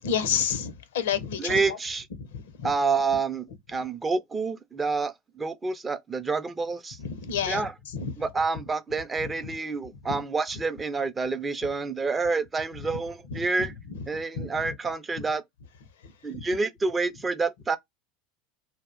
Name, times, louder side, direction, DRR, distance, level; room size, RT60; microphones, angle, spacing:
voice 1, 0.0-1.6 2.6-2.7 7.0-7.6 7.9-8.1 10.1-10.2 13.3-13.7 14.4-14.5 16.3-16.4, left 7 dB, 70° left, 0.5 m, -29 dB
voice 2, 1.4-2.1 2.6-7.0 7.5-7.7 8.2-13.7 14.1-15.4 16.2-17.8, right 4 dB, 20° right, 0.4 m, -28 dB
2.3 x 2.0 x 3.4 m
figure-of-eight pair, 80°, 0 cm